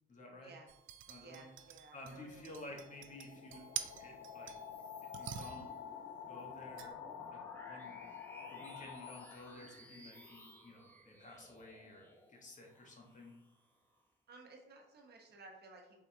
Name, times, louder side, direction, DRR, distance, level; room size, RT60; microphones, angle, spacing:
voice 1, 0.1-0.5 1.1-1.5 1.9-3.6 4.0-4.5 5.1-5.7 6.3-7.0 7.3-8.1 8.5-13.3, left 1 dB, 40° left, 0 dB, 1.2 m, -53 dB
sound 1, 0.7-4.8 5.1-5.8 6.8-6.9, right 10 dB, 80° right, 0.4 m, -47 dB
voice 2, 1.2-3.0 14.3-16.0, right 3 dB, 55° right, 1 dB, 1.0 m, -57 dB
sound 2, 2.2-9.8, left 8 dB, 75° left, 0.4 m, -50 dB
sound 3, 3.1-14.0, equal, 10° left, 0.8 m, -59 dB
4.7 x 3.4 x 2.7 m, 0.87 s
cardioid pair, 90°, 20 cm